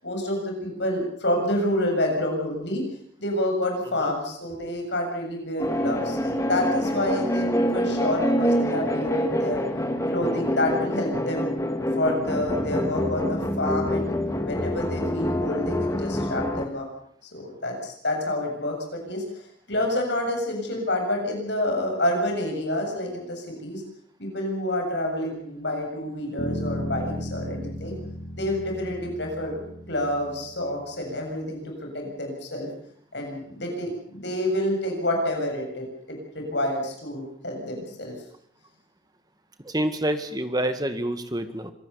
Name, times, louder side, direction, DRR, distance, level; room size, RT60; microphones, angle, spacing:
voice 1, 0.0-2.8 3.2-9.6 10.1-14.1 14.4-16.9 17.2-19.2 19.7-23.8 24.2-28.0 28.4-29.6 29.9-32.7 33.1-38.1, left 1 dB, 60° left, 2 dB, 7.7 m, -28 dB
sound 1, 5.6-16.7, equal, 15° left, 2.0 m, -26 dB
Bass guitar, 26.4-30.8, equal, 85° left, 3.5 m, -34 dB
voice 2, 39.6-41.7, right 1 dB, 20° right, 9 dB, 1.8 m, -27 dB
26.0 x 18.5 x 7.1 m, 0.64 s
head